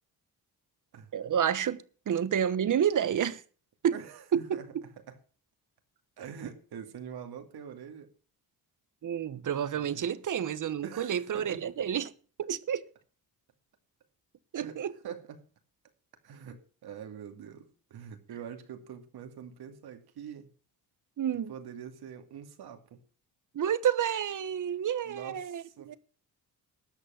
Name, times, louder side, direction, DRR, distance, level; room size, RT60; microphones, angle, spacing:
voice 1, 1.1-3.4 3.8-3.9 4.3-4.4 9.0-12.1 12.5-12.8 14.5-14.9 21.2-21.5 23.5-26.0, right 9 dB, 55° right, 1.1 m, -29 dB
voice 2, 3.9-4.7 5.1-5.2 6.2-8.1 9.7-10.1 10.6-11.6 14.6-14.8 15.0-15.4 16.2-20.5 21.5-23.0 25.0-26.0, right 8 dB, 75° right, 2.5 m, -45 dB
13.0 x 8.5 x 6.4 m
cardioid pair, 110°, 38 cm